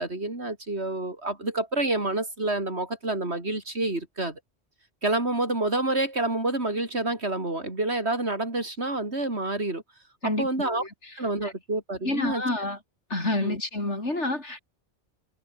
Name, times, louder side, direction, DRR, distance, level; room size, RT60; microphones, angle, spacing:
voice 1, 0.0-4.4 5.0-9.8 10.2-10.8 11.2-12.4 13.4-13.6, right 2 dB, 70° right, 5.0 m, -28 dB
voice 2, 10.2-11.5 12.0-12.8 13.1-14.6, left 2 dB, 90° left, 5.9 m, -29 dB
omnidirectional pair, 1.2 m